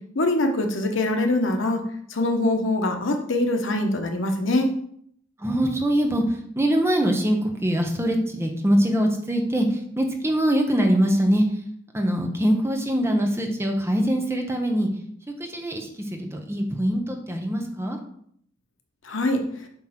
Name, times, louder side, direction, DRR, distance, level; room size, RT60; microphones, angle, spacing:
voice 1, 0.1-1.8 2.1-4.7 19.0-19.4, left 2 dB, 85° left, 4 dB, 1.1 m, -23 dB
voice 2, 5.4-6.2 6.6-11.4 11.9-14.9 15.4-18.0, equal, 15° right, 3 dB, 0.9 m, -23 dB
7.3 x 3.2 x 5.8 m, 0.66 s
head